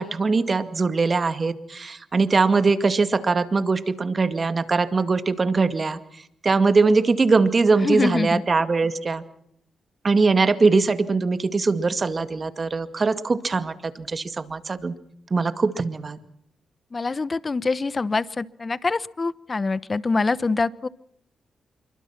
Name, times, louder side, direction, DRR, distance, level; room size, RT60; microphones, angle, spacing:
voice 1, 0.0-9.2 10.0-15.0 15.3-16.2, right 4 dB, 40° right, 11 dB, 2.1 m, -21 dB
voice 2, 7.8-8.4 16.9-20.9, left 3 dB, 35° left, 19 dB, 1.0 m, -25 dB
26.5 x 23.5 x 5.9 m, 0.72 s
cardioid pair, 70°, 0 cm